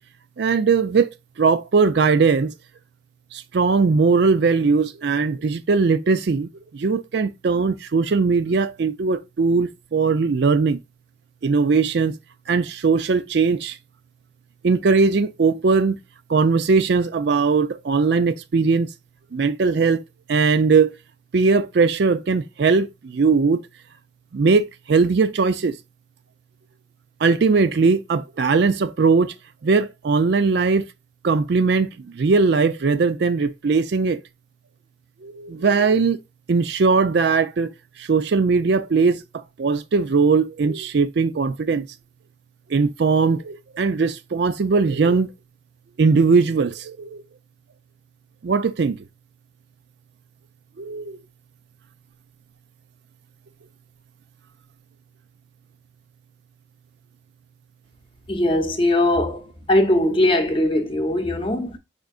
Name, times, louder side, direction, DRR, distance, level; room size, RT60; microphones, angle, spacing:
voice 1, 0.4-1.1 1.4-2.5 3.3-6.5 6.7-10.8 11.4-12.2 12.5-13.7 14.6-16.0 16.3-18.9 19.3-20.0 20.3-20.9 21.3-23.6 24.3-25.7 27.2-29.3 29.6-30.9 31.2-31.9 32.2-34.2 35.2-36.2 36.5-37.7 38.1-39.2 39.6-41.8 42.7-45.3 46.0-47.2 48.4-49.0 50.8-51.2, right 4 dB, 60° right, 0.4 m, -19 dB
voice 2, 58.3-59.4 59.7-61.8, left 1 dB, 25° left, 0.8 m, -20 dB
5.0 x 4.5 x 2.4 m
head